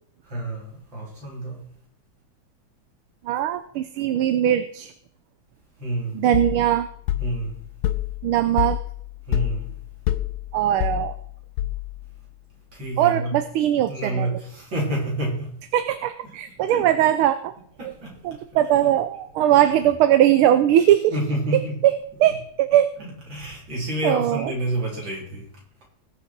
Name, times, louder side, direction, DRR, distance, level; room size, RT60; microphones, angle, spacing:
voice 1, 0.2-1.7 5.8-6.2 7.2-7.6 9.3-9.7 12.7-13.3 13.9-15.6 16.7-16.9 17.8-18.4 18.8-18.9 19.5-19.7 21.1-21.8 23.0-25.5, right 1 dB, 60° right, 4.8 m, -29 dB
voice 2, 3.2-4.9 6.1-6.9 8.2-8.8 10.5-11.2 13.0-14.4 15.7-17.5 17.8-17.9 18.2-21.1 21.8-21.9 22.2-22.9 24.0-24.5, right 11 dB, 85° right, 1.6 m, -20 dB
sound 1, 6.3-12.1, left 14 dB, 85° left, 1.5 m, -28 dB
20.0 x 6.8 x 4.6 m
omnidirectional pair, 2.3 m